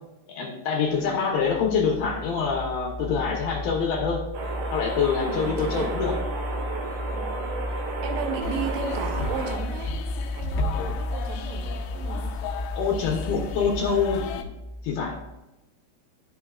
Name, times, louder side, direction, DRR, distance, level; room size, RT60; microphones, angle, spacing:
voice 1, 0.3-4.2 4.7-6.1 10.8-10.9 12.7-14.5 14.8-15.2, left 6 dB, 70° left, -1 dB, 2.6 m, -25 dB
sound 1, 1.3-15.4, left 1 dB, 35° left, 1.3 m, -34 dB
sound 2, 4.3-9.6, right 4 dB, 65° right, 2.1 m, -33 dB
voice 2, 5.2-6.0 7.1-7.4 8.0-10.0 10.3-12.4, right 7 dB, 85° right, 5 dB, 2.8 m, -34 dB
sound 3, 8.4-14.4, left 5 dB, 90° left, 2.9 m, -34 dB
13.5 x 5.7 x 2.4 m, 1.0 s
omnidirectional pair, 4.9 m